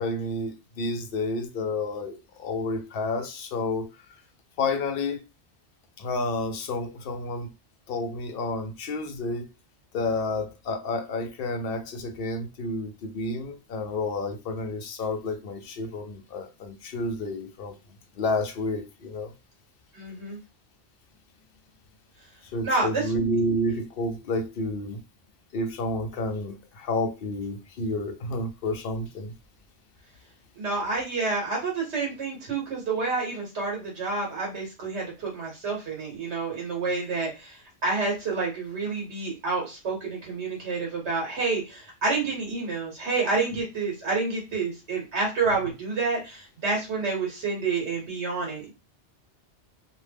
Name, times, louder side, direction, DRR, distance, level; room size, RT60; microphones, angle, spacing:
voice 1, 0.0-3.9 4.6-5.2 6.0-7.5 7.9-9.5 9.9-17.7 18.2-19.3 22.5-25.0 25.5-29.3 43.3-43.5, left 2 dB, 60° left, 0.7 m, -30 dB
voice 2, 19.9-20.4 22.6-23.0 30.6-48.7, right 4 dB, 80° right, 1.1 m, -29 dB
2.5 x 2.1 x 3.3 m
omnidirectional pair, 1.1 m